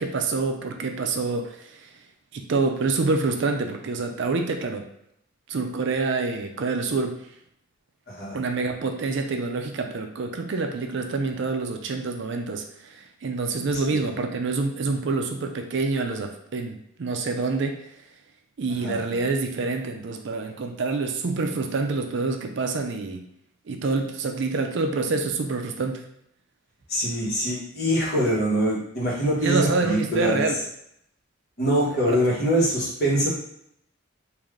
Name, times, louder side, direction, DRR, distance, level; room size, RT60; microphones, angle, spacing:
voice 1, 0.0-1.9 2.3-4.9 5.5-7.2 8.3-17.8 18.6-23.2 23.7-26.0 29.4-30.6 32.1-32.2, right 3 dB, 55° right, 4 dB, 0.4 m, -27 dB
voice 2, 8.1-8.4 13.9-14.1 18.8-19.2 26.9-30.4 31.6-33.3, equal, 45° left, -5 dB, 1.2 m, -24 dB
3.3 x 2.6 x 3.6 m, 0.74 s
head